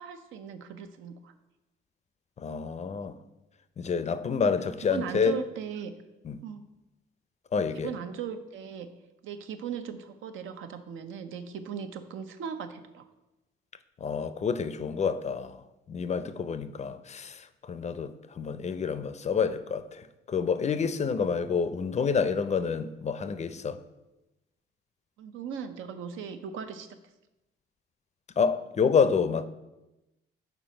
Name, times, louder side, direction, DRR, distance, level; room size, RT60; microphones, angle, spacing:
voice 1, 0.0-1.3 4.6-5.9 6.4-6.6 7.7-8.9 9.2-13.0 25.2-26.9, right 7 dB, 80° right, 0.6 m, -38 dB
voice 2, 2.4-3.1 3.8-5.4 6.2-6.4 7.5-7.9 14.0-15.6 15.9-23.8 28.4-29.4, left 6 dB, 35° left, 0.4 m, -28 dB
5.9 x 4.1 x 5.1 m
cardioid pair, 90°, 20 cm